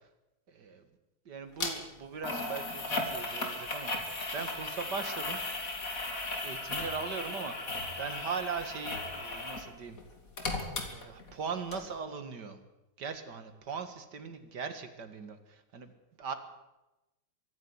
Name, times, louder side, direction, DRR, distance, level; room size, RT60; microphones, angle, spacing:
voice 1, 0.5-0.8 1.3-3.9 4.3-5.4 6.4-7.6 8.0-10.0 10.8-12.6 13.0-15.9 16.2-16.3, right 5 dB, 55° right, 9 dB, 2.3 m, -39 dB
sound 1, 1.6-1.7 2.2-9.7 10.0-11.4 11.7-11.8, left 2 dB, 40° left, 2.9 m, -36 dB
24.0 x 11.0 x 9.8 m, 0.99 s
omnidirectional pair, 2.3 m